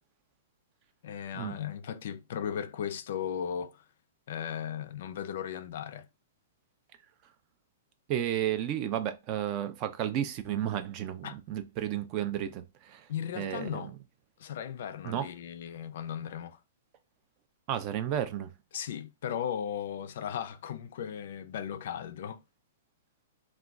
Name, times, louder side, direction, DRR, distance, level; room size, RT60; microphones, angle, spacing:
voice 1, 1.0-3.8 4.3-6.1 11.2-11.4 13.1-13.9 14.4-16.6 18.7-22.4, left 9 dB, 55° left, 0.3 m, -36 dB
voice 2, 8.1-13.0 13.4-13.9 15.0-15.3 17.7-18.5, right 11 dB, 30° right, 0.3 m, -32 dB
2.3 x 2.2 x 3.6 m
hypercardioid pair, 165°, 0 cm